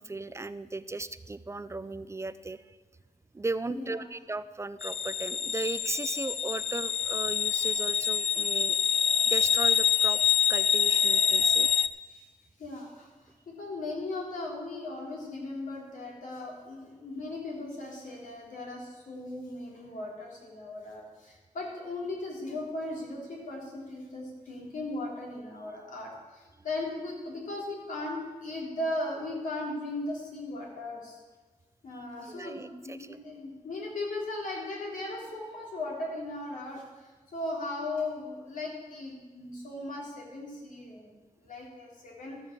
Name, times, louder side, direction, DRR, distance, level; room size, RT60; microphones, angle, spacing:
voice 1, 0.0-2.8 3.3-8.8 9.2-10.2 10.5-11.7 31.9-32.0 32.3-33.2, right 2 dB, 20° right, 14 dB, 0.4 m, -36 dB
voice 2, 3.7-4.0 12.1-12.3 12.6-31.2 31.8-42.4, left 2 dB, 75° left, -2 dB, 3.4 m, -37 dB
sound 1, 4.8-11.9, left 7 dB, 50° left, 0.4 m, -26 dB
13.0 x 7.1 x 7.3 m, 1.3 s
wide cardioid pair, 105°, 14 cm